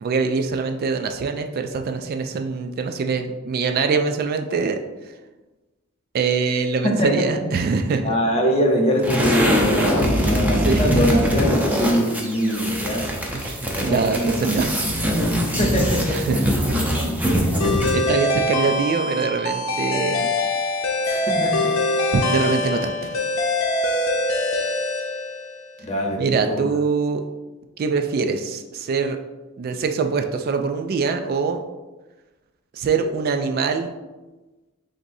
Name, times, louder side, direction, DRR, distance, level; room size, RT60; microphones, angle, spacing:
voice 1, 0.0-4.8 6.1-8.1 10.2-10.3 10.6-11.2 13.3-14.8 16.1-16.7 17.4-17.5 17.9-20.3 22.1-23.2 26.2-27.2 27.8-29.2 29.6-31.6 32.7-33.9, right 4 dB, 45° right, 6 dB, 0.3 m, -23 dB
voice 2, 6.8-7.4 8.0-13.1 13.7-14.4 15.4-16.4 21.0-21.8 25.8-26.6, equal, 30° left, 0 dB, 0.8 m, -23 dB
sound 1, 9.0-18.1, equal, 10° right, 0.6 m, -22 dB
sound 2, 17.6-25.7, left 2 dB, 80° left, 0.7 m, -23 dB
7.6 x 2.6 x 2.6 m, 1.2 s
head